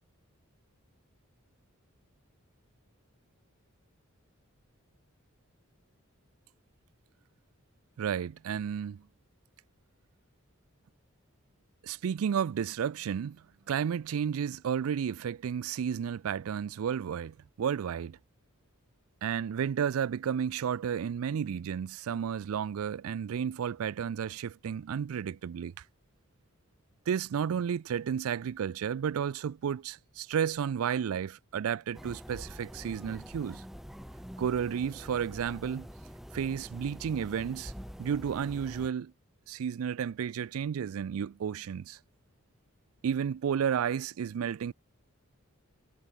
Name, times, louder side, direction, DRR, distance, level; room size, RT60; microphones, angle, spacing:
voice 1, 8.0-9.0 11.8-18.2 19.2-25.7 27.1-33.6 34.4-35.9 36.3-37.7 38.0-39.1 39.5-42.0 43.0-44.7, right 8 dB, 80° right, 0.4 m, -32 dB
sound 1, 31.9-38.9, equal, ahead, 0.9 m, -46 dB
head